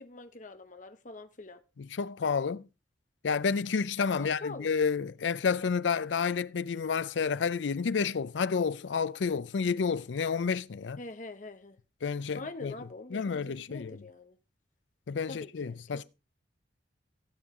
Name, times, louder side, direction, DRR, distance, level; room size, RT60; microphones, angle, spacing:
voice 1, 0.0-1.6 4.2-4.7 11.0-11.8 12.3-14.4 15.3-16.0, left 2 dB, 45° left, 0.9 m, -44 dB
voice 2, 1.8-2.7 3.2-11.0 12.0-12.7 13.1-14.0 15.1-16.0, left 5 dB, 85° left, 0.5 m, -30 dB
17.0 x 7.2 x 3.7 m
head